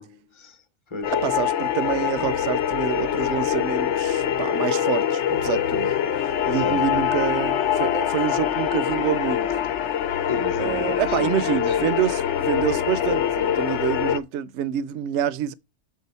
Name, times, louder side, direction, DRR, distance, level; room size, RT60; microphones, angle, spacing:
voice 1, 0.0-1.2 6.5-6.8 10.3-12.0, left 3 dB, 25° left, 0.8 m, -34 dB
sound 1, 1.0-14.2, left 9 dB, 70° left, 1.0 m, -24 dB
voice 2, 1.2-5.9 6.2-9.5 10.6-15.5, right 11 dB, 70° right, 0.8 m, -27 dB
7.5 x 3.7 x 5.4 m
omnidirectional pair, 1.3 m